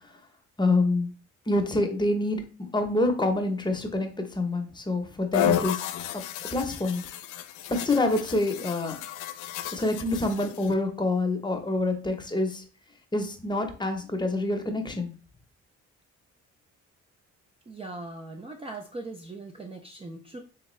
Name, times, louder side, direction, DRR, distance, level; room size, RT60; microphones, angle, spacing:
voice 1, 0.6-1.1 1.5-2.4 2.7-5.8 6.1-6.2 6.5-7.0 7.7-9.0 9.7-12.6 13.1-15.1, left 2 dB, 15° left, 4 dB, 0.8 m, -26 dB
sound 1, 5.3-10.7, left 10 dB, 90° left, 0.5 m, -32 dB
voice 2, 17.7-20.4, right 2 dB, 20° right, 3 dB, 0.5 m, -40 dB
3.5 x 3.4 x 3.1 m, 0.37 s
cardioid pair, 90°, 30 cm